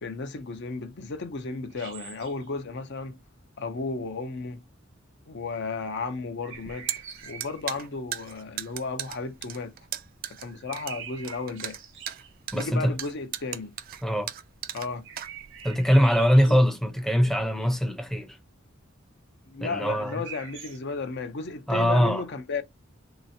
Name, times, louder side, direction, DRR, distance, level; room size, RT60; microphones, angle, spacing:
voice 1, 0.0-3.2 3.6-4.6 5.3-6.9 7.2-9.7 10.4-11.8 12.5-13.7 14.7-15.1 16.4-16.6 19.5-22.6, left 4 dB, 60° left, 0.6 m, -34 dB
sound 1, 1.7-2.5 6.4-7.7 10.5-12.3 15.0-16.6 20.0-20.8, right 7 dB, 65° right, 0.7 m, -44 dB
sound 2, 6.5-15.7, right 11 dB, 45° right, 0.3 m, -37 dB
voice 2, 12.5-12.9 14.0-14.3 15.6-18.4 19.6-20.2 21.7-22.2, equal, ahead, 0.5 m, -22 dB
3.2 x 2.9 x 2.6 m
head